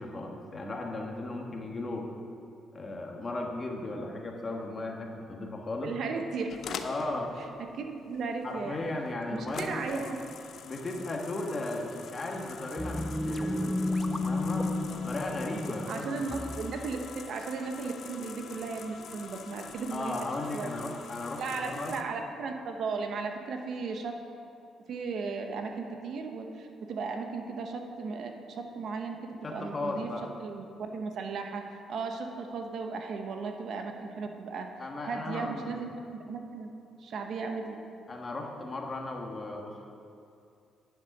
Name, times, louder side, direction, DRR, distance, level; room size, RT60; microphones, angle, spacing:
voice 1, 0.0-2.1 2.7-5.9 6.8-7.3 8.4-10.0 10.6-13.9 14.2-16.4 19.9-21.9 29.4-30.3 34.8-35.7 38.1-39.9, left 2 dB, 35° left, 1 dB, 1.5 m, -36 dB
voice 2, 5.8-6.5 7.8-8.8 9.3-10.2 15.9-20.1 20.5-20.7 21.4-24.1 24.9-30.1 30.4-31.6 31.9-34.7 35.1-36.7 37.0-37.8, right 4 dB, 65° right, 4 dB, 1.0 m, -36 dB
sound 1, 6.5-22.0, left 6 dB, 65° left, 0.7 m, -45 dB
sound 2, 12.8-17.1, left 2 dB, 5° left, 0.6 m, -32 dB
10.5 x 7.5 x 6.0 m, 2.5 s
cardioid pair, 90°, 0 cm